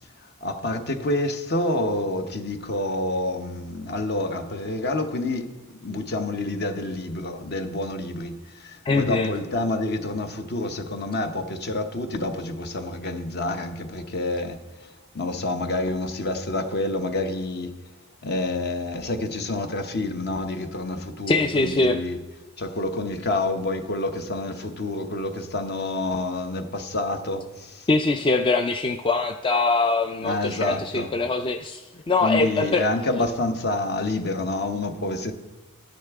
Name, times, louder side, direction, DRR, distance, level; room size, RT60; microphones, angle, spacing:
voice 1, 0.2-5.5 5.8-14.9 15.1-17.7 18.2-22.2 22.6-27.9 30.2-31.1 32.2-35.3, left 2 dB, 50° left, 0.9 m, -28 dB
voice 2, 8.8-9.3 21.3-22.0 27.9-32.8, left 3 dB, 25° left, 0.3 m, -23 dB
13.0 x 10.0 x 3.5 m
head